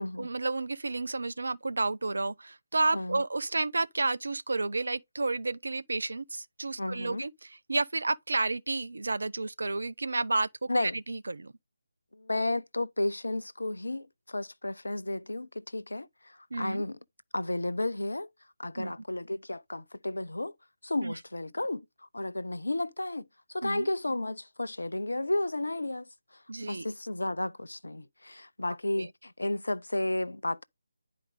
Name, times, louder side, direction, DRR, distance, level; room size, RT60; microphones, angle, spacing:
voice 1, 0.0-11.5 16.5-16.8 18.8-18.9 21.0-21.1 23.6-23.9 26.5-26.9 29.0-29.1, right 3 dB, 60° right, 0.5 m, -31 dB
voice 2, 6.8-7.3 10.7-11.0 12.1-17.0 17.3-18.3 18.6-20.5 20.8-21.9 22.1-26.1 26.6-30.6, left 2 dB, 70° left, 0.5 m, -33 dB
9.9 x 4.8 x 3.7 m
figure-of-eight pair, 150°, 0 cm